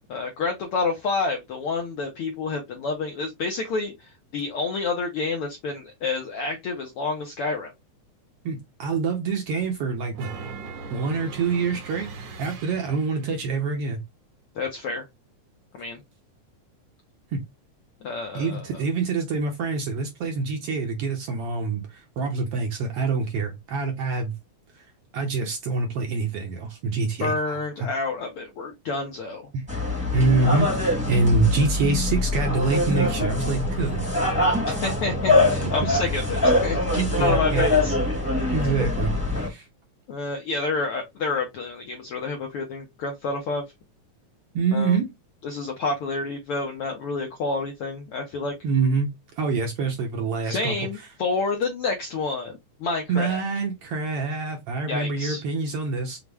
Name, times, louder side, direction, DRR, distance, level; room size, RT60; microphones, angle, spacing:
voice 1, 0.1-7.7 14.5-15.0 15.7-16.0 18.0-18.8 27.2-29.5 34.7-38.0 40.1-43.6 44.7-45.0 45.4-48.5 50.4-53.4 54.9-55.4, left 3 dB, 75° left, 1.3 m, -29 dB
voice 2, 8.5-10.3 10.9-14.0 17.3-17.4 18.3-24.3 25.1-27.6 29.5-29.6 30.1-34.4 35.6-35.9 37.0-37.7 38.5-39.7 44.5-45.0 48.6-50.7 53.1-56.2, right 4 dB, 65° right, 1.6 m, -26 dB
sound 1, 10.1-13.3, right 4 dB, 80° right, 2.8 m, -39 dB
sound 2, 29.7-39.5, left 2 dB, 5° right, 0.9 m, -23 dB
6.0 x 2.1 x 3.3 m
omnidirectional pair, 3.4 m